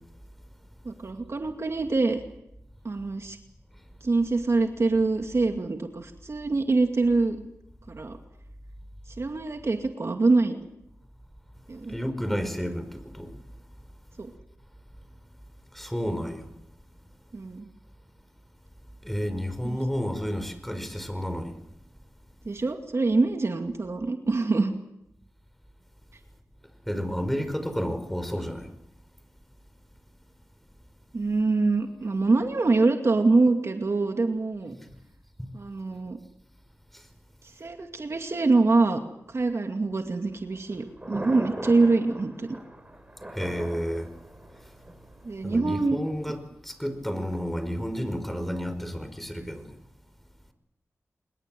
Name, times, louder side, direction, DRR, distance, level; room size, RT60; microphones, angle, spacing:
voice 1, 0.9-2.2 2.8-3.4 4.0-7.4 7.9-8.2 9.2-10.7 11.7-11.9 14.2-14.3 17.3-17.7 19.6-19.8 22.5-24.7 31.1-34.7 35.5-36.2 37.6-39.0 39.3-42.5 45.2-46.0, right 3 dB, 55° right, 2.3 m, -24 dB
voice 2, 11.9-13.4 15.7-16.5 19.0-21.5 26.9-28.7 43.3-44.1 45.4-46.4 46.6-49.8, equal, 5° left, 5.1 m, -31 dB
Thunder, 40.2-46.3, right 1 dB, 20° right, 6.4 m, -41 dB
26.0 x 21.5 x 7.7 m
cardioid pair, 50°, 6 cm